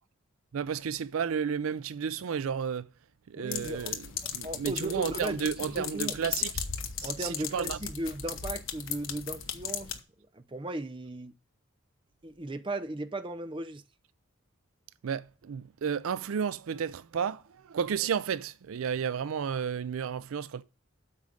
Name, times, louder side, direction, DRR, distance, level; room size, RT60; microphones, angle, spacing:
voice 1, 0.5-2.9 3.3-4.1 4.3-6.7 7.0-7.8 15.0-20.6, right 7 dB, 75° right, 0.4 m, -32 dB
voice 2, 3.3-3.9 4.4-5.5 5.8-6.2 7.0-9.9 10.3-11.3 12.2-13.8, right 1 dB, 25° right, 0.5 m, -36 dB
sound 1, 3.5-10.0, left 8 dB, 65° left, 1.1 m, -37 dB
8.5 x 5.1 x 6.4 m
head